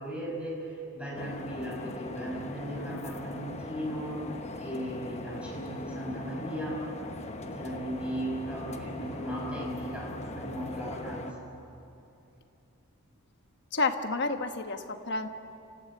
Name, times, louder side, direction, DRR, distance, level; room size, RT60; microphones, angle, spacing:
voice 1, 0.0-6.9 7.4-11.5, right 1 dB, 5° right, -3 dB, 5.7 m, -37 dB
sound 1, 1.2-11.3, left 1 dB, 30° left, 1.1 m, -40 dB
voice 2, 13.7-15.3, left 3 dB, 50° left, 6 dB, 1.3 m, -30 dB
28.0 x 14.5 x 8.6 m, 2.7 s
head